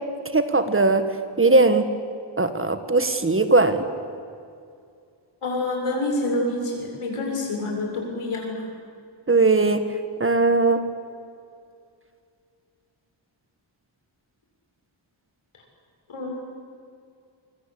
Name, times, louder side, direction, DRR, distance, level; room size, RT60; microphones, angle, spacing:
voice 1, 0.3-1.0 1.4-1.9 2.4-3.8 9.3-9.8 10.2-10.8, right 3 dB, 25° right, 9 dB, 1.5 m, -19 dB
voice 2, 5.4-8.6 16.1-16.3, left 2 dB, 85° left, 0 dB, 7.5 m, -27 dB
26.5 x 23.5 x 8.5 m, 2.4 s
wide cardioid pair, 175°, 50 cm